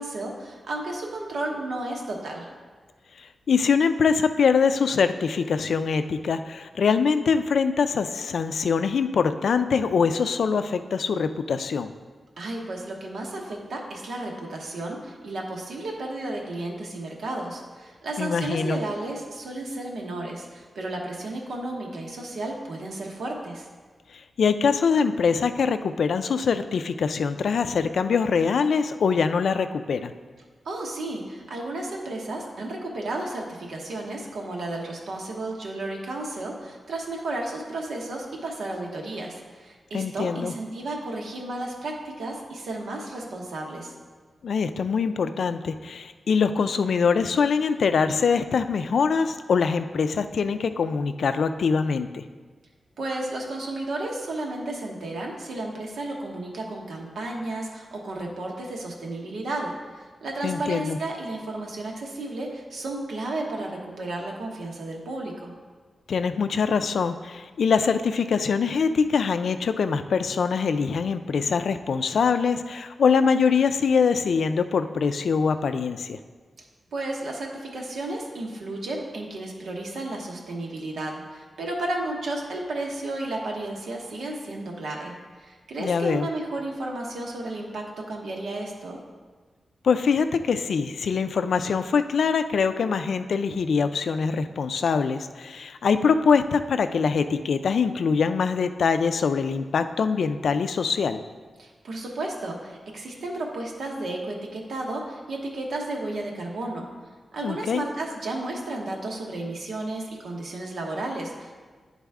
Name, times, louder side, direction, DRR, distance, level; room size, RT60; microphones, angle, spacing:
voice 1, 0.0-2.5 12.4-23.7 30.6-43.9 53.0-59.7 60.2-65.5 76.9-89.0 101.6-106.9 107.3-111.5, right 2 dB, 90° right, 0 dB, 1.1 m, -33 dB
voice 2, 3.2-11.9 18.2-18.8 24.1-30.1 39.9-40.5 44.4-52.3 60.4-61.0 66.1-76.2 85.8-86.3 89.8-101.2 107.4-107.8, left 5 dB, 75° left, 10 dB, 0.3 m, -23 dB
10.0 x 4.0 x 3.5 m, 1.4 s
wide cardioid pair, 160°, 0 cm